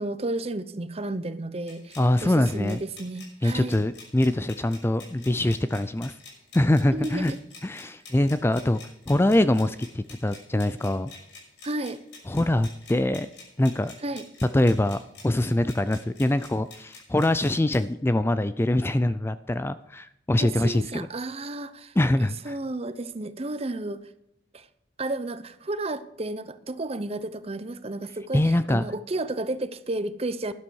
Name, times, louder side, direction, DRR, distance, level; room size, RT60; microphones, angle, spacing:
voice 1, 0.0-3.8 6.9-7.4 11.6-12.0 14.0-14.3 20.4-24.0 24.5-24.7 25.0-30.5, right 2 dB, 35° right, 0.8 m, -32 dB
sound 1, 1.7-17.9, left 3 dB, 75° left, 6.0 m, -48 dB
voice 2, 2.0-2.8 3.4-6.1 6.5-7.3 7.6-8.8 9.1-11.1 12.3-13.3 13.6-13.9 14.5-15.0 15.2-21.1 22.0-22.6 28.3-28.8, left 1 dB, 15° left, 0.4 m, -23 dB
12.5 x 11.5 x 4.7 m
head